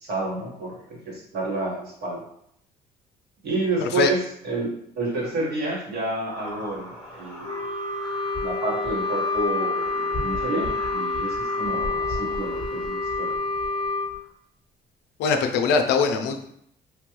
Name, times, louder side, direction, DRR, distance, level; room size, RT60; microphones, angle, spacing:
voice 1, 0.0-2.3 3.4-7.7 8.4-13.4, right 2 dB, 70° right, -4 dB, 1.4 m, -30 dB
voice 2, 3.8-4.1 15.2-16.5, left 5 dB, 85° left, 6 dB, 0.4 m, -22 dB
sound 1, 6.2-14.3, left 1 dB, 5° left, 1.2 m, -38 dB
Wind instrument woodwind instrument, 7.4-14.1, left 3 dB, 25° left, 0.6 m, -28 dB
3.2 x 2.3 x 3.0 m, 0.70 s
cardioid pair, 110°, 17 cm